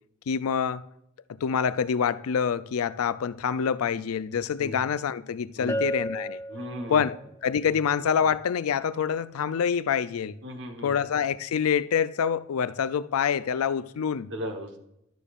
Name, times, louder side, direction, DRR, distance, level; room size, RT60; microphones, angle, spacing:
voice 1, 0.3-0.8 1.4-6.4 6.9-10.4 10.8-14.3, left 7 dB, 90° left, 0.4 m, -26 dB
Bell, 5.7-7.3, equal, 15° left, 0.4 m, -32 dB
voice 2, 6.5-7.0 10.4-10.9 14.3-14.8, equal, 55° right, 1.2 m, -36 dB
12.0 x 6.8 x 2.4 m
head